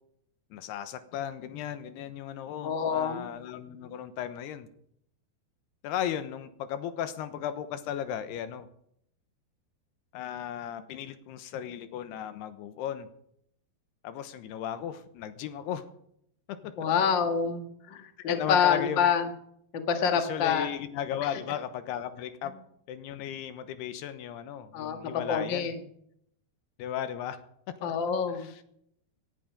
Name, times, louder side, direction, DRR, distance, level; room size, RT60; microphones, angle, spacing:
voice 1, 0.5-4.7 5.8-8.7 10.1-13.1 14.0-15.9 16.5-16.9 18.2-19.1 20.1-22.5 22.9-25.7 26.8-27.4 27.8-27.9 28.3-28.6, left 10 dB, 85° left, 11 dB, 3.0 m, -36 dB
voice 2, 2.6-3.3 16.8-19.2 19.7-20.7 24.7-25.7 27.8-28.5, left 7 dB, 65° left, 6 dB, 1.1 m, -27 dB
18.5 x 11.0 x 5.2 m, 0.72 s
omnidirectional pair, 4.7 m